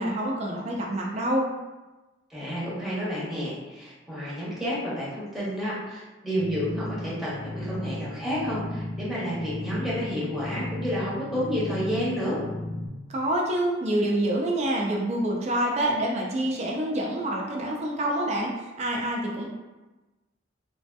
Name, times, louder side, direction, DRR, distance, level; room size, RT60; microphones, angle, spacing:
voice 1, 0.0-1.5 13.1-19.4, right 1 dB, 35° right, -2 dB, 0.4 m, -27 dB
voice 2, 2.3-12.4, equal, ahead, -9 dB, 0.9 m, -30 dB
sound 1, 6.4-12.9, left 1 dB, 35° left, 0.5 m, -35 dB
3.0 x 2.7 x 2.2 m, 1.1 s
head